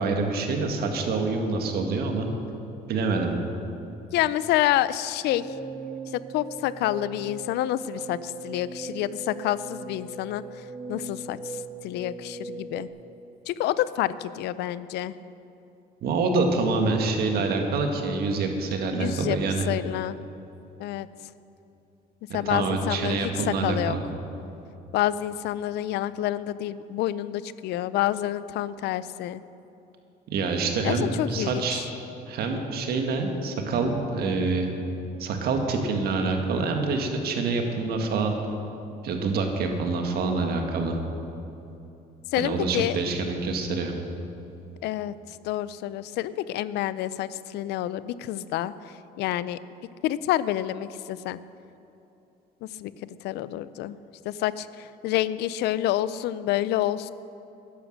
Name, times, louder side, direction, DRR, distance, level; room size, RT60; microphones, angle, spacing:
voice 1, 0.0-2.3 2.9-3.4 16.0-19.7 22.3-24.0 30.3-31.8 32.3-34.7 35.2-38.3 39.0-41.0 42.4-43.9, right 3 dB, 65° right, 4 dB, 1.8 m, -26 dB
voice 2, 4.1-5.5 6.1-10.4 10.9-12.9 13.5-15.1 18.9-19.4 19.7-20.2 20.8-21.1 22.3-24.0 24.9-29.4 30.8-31.8 42.3-43.0 44.8-45.1 45.4-48.7 49.2-49.6 50.0-51.4 52.6-54.0 54.3-57.1, left 13 dB, 80° left, 16 dB, 0.5 m, -28 dB
sound 1, 5.3-12.9, right 3 dB, 25° right, 1.7 m, -39 dB
12.0 x 10.0 x 6.5 m, 2.8 s
cardioid pair, 110°, 17 cm